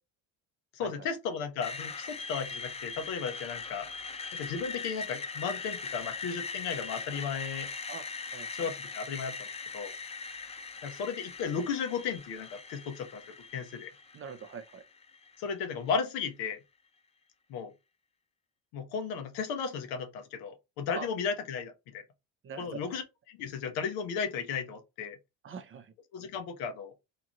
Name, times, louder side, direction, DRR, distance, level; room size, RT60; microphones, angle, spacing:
voice 1, 0.7-3.9 4.3-7.7 8.5-9.5 9.7-9.9 10.8-13.2 13.5-13.9 15.4-16.6 17.5-17.7 18.7-22.0 22.6-23.0 23.3-25.2 26.1-26.9, left 6 dB, 75° left, 1.0 m, -35 dB
Screech, 1.6-15.6, left 4 dB, 15° left, 0.3 m, -41 dB
voice 2, 8.3-8.7 14.1-14.8 20.9-21.1 22.4-23.0 25.4-25.9, right 6 dB, 30° right, 0.7 m, -43 dB
2.9 x 2.4 x 2.9 m
supercardioid pair, 85°, 40 cm